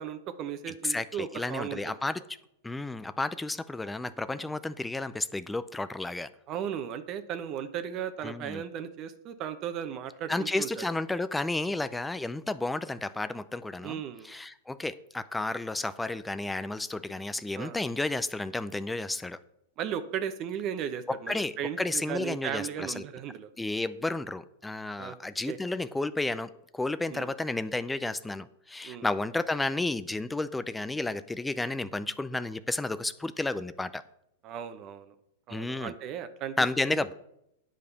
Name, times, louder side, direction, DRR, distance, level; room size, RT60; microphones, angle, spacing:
voice 1, 0.0-1.8 4.3-4.5 6.5-10.9 13.8-14.3 17.5-17.8 19.8-23.5 25.0-25.2 25.5-25.6 27.1-27.3 28.8-29.1 34.4-35.1 35.5-36.5 36.9-37.0, right 9 dB, 40° right, 10 dB, 0.8 m, -36 dB
voice 2, 0.8-2.2 2.6-6.3 8.2-8.6 10.3-19.4 21.1-23.0 23.6-34.0 35.5-35.9 36.6-37.1, left 2 dB, 5° left, 13 dB, 0.4 m, -32 dB
8.9 x 5.0 x 6.9 m, 0.79 s
hypercardioid pair, 115°, 0 cm